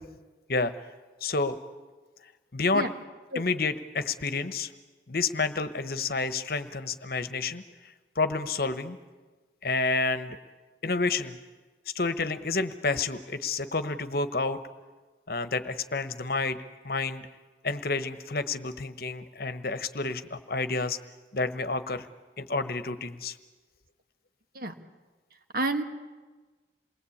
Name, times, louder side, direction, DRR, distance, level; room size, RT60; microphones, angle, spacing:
voice 1, 1.2-1.6 2.5-2.9 3.3-4.7 5.1-7.6 8.2-9.0 9.6-10.4 10.8-11.4 11.9-14.6 15.3-17.2 17.6-21.0 21.3-22.1 22.4-23.4, left 3 dB, 50° left, 11 dB, 1.1 m, -29 dB
voice 2, 25.5-25.8, right 2 dB, 50° right, 7 dB, 1.6 m, -29 dB
28.5 x 21.0 x 8.6 m, 1.3 s
head